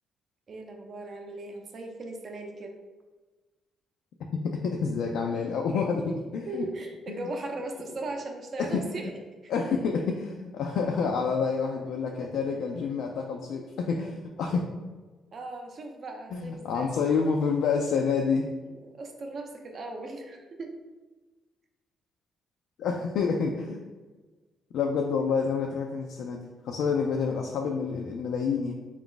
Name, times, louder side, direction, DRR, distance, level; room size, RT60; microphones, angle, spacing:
voice 1, 0.5-2.7 6.5-9.1 9.4-9.5 15.3-16.9 18.6-20.8, right 2 dB, 45° right, 3 dB, 0.6 m, -38 dB
voice 2, 4.4-6.7 7.1-7.3 8.6-9.1 9.5-14.6 16.3-18.5 22.8-23.8 24.7-28.7, left 5 dB, 75° left, 1 dB, 0.3 m, -28 dB
3.9 x 2.4 x 3.8 m, 1.3 s
cardioid pair, 90°, 0 cm